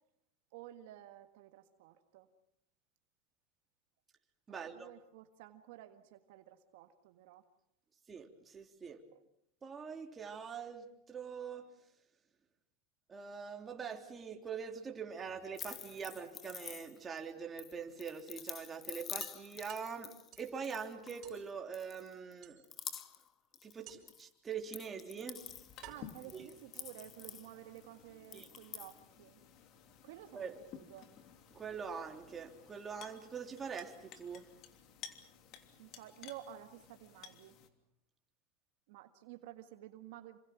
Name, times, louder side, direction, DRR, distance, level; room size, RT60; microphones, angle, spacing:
voice 1, 0.5-2.3 4.5-7.4 9.1-9.2 25.8-29.4 30.0-31.1 35.8-37.6 38.9-40.4, right 13 dB, 70° right, 7 dB, 1.7 m, -52 dB
voice 2, 4.5-4.9 8.1-9.0 9.6-11.7 13.1-20.1 20.4-22.6 23.6-25.4 26.3-26.5 28.3-28.5 30.3-30.5 31.5-34.5, right 6 dB, 25° right, 3 dB, 3.6 m, -44 dB
sound 1, 15.2-16.2 17.7-17.8 18.2-18.3 18.6-18.7 19.2-20.6 21.2-21.5 22.4-23.0 23.9-24.3 25.1-25.2 25.8-27.2, right 13 dB, 50° right, 5.2 m, -57 dB
sound 2, 15.5-17.2 17.6-21.4 21.7-22.3 22.6-23.3 23.5-24.2 24.5-27.8 28.2-29.0, left 9 dB, 35° left, 1.5 m, -47 dB
sound 3, 25.4-37.7, left 8 dB, 50° left, 3.1 m, -56 dB
28.0 x 26.0 x 6.1 m, 0.76 s
supercardioid pair, 115°, 0 cm